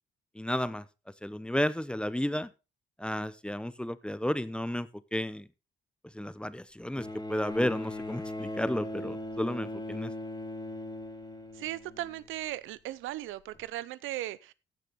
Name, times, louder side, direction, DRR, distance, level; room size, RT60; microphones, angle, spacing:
voice 1, 0.3-0.8 1.2-2.5 3.0-5.5 6.1-10.1, left 1 dB, 5° left, 0.7 m, -32 dB
Bowed string instrument, 7.0-12.4 13.5-13.6, left 1 dB, 20° left, 2.7 m, -39 dB
voice 2, 11.5-14.5, right 15 dB, 85° right, 0.6 m, -37 dB
15.0 x 6.7 x 3.9 m
cardioid pair, 90°, 20 cm